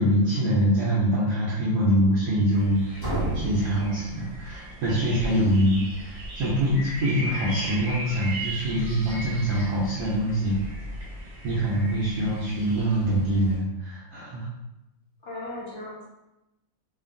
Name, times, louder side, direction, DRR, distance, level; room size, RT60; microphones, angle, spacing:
voice 1, 0.0-10.6 11.4-14.5, equal, 70° right, -6 dB, 1.1 m, -24 dB
sound 1, 2.5-13.6, right 1 dB, 40° right, 0.5 m, -38 dB
sound 2, 3.0-4.9, right 1 dB, 15° left, 0.8 m, -31 dB
voice 2, 5.1-5.6 15.2-16.0, left 2 dB, 50° left, -6 dB, 1.0 m, -38 dB
2.8 x 2.5 x 2.4 m, 0.93 s
omnidirectional pair, 2.0 m